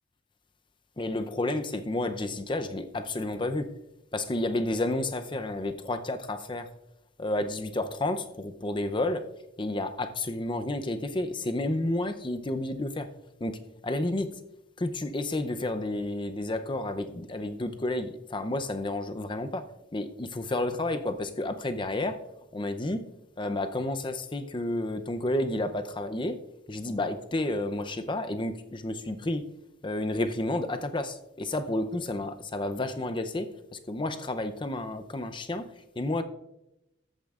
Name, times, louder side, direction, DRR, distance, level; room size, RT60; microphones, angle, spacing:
voice 1, 1.0-3.7 4.1-6.7 7.2-9.3 9.6-13.1 13.4-14.3 14.8-19.6 19.9-22.2 22.5-23.0 23.4-26.3 26.7-29.4 29.8-35.7 36.0-36.2, left 2 dB, 25° left, 0.6 m, -31 dB
14.0 x 8.6 x 2.5 m
head